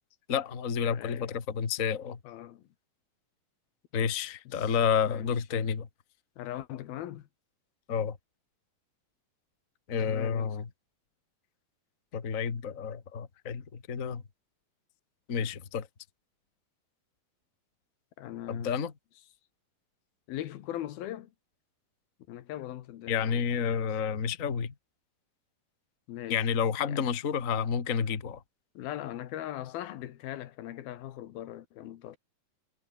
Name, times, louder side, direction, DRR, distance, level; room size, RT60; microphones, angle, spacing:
voice 1, 0.3-2.2 3.9-5.9 7.9-8.2 9.9-10.7 12.1-14.2 15.3-15.9 18.5-18.9 23.1-24.7 26.3-28.4, left 7 dB, 30° left, 1.5 m, -30 dB
voice 2, 0.9-1.3 2.2-2.6 4.0-4.1 4.5-4.7 5.1-5.4 6.4-7.3 10.0-10.6 18.2-18.8 20.3-21.3 22.3-23.7 26.1-26.5 26.8-27.1 28.7-32.2, left 13 dB, 80° left, 3.3 m, -40 dB
omnidirectional pair, 4.2 m